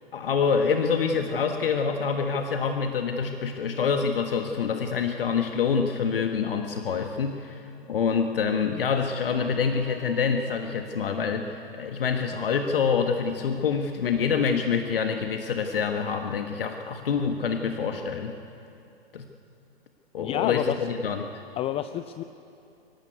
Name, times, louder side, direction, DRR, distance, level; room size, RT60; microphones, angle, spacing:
voice 1, 0.1-18.4 19.1-19.3 20.1-21.3, left 6 dB, 70° left, 5 dB, 1.5 m, -26 dB
Piano, 8.9-11.2, right 4 dB, 80° right, 5.3 m, -47 dB
voice 2, 20.2-20.8 21.6-22.2, left 12 dB, 20° left, 11 dB, 0.5 m, -28 dB
23.0 x 17.5 x 9.6 m, 2.7 s
figure-of-eight pair, 110°, 30 cm